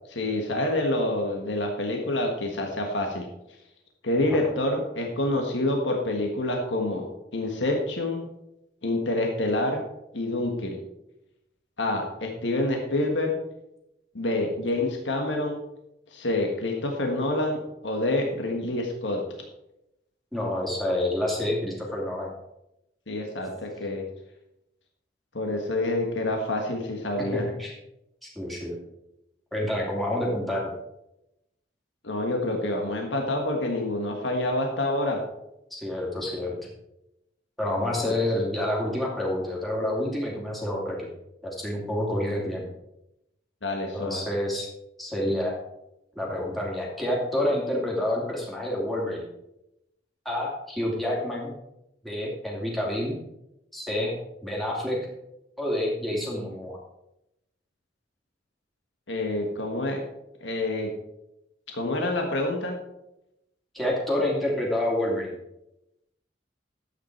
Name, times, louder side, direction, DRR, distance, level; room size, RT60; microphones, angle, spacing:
voice 1, 0.1-3.3 4.0-7.1 7.3-8.3 8.8-9.8 10.1-10.8 11.8-13.4 14.2-15.6 16.1-19.2 23.1-24.0 25.3-27.4 32.0-35.2 38.0-38.2 43.6-44.2 59.1-60.0 60.4-60.9 61.7-62.8, left 1 dB, 90° left, 2 dB, 1.6 m, -27 dB
voice 2, 20.3-22.3 27.4-27.7 28.2-28.7 29.5-30.7 35.7-36.5 37.6-41.1 41.4-42.6 43.9-44.7 45.0-45.6 46.2-49.3 50.2-51.5 52.0-53.1 53.7-54.2 54.4-55.0 55.6-56.8 63.7-65.4, left 1 dB, ahead, -4 dB, 2.4 m, -28 dB
12.5 x 8.5 x 4.5 m, 0.89 s
head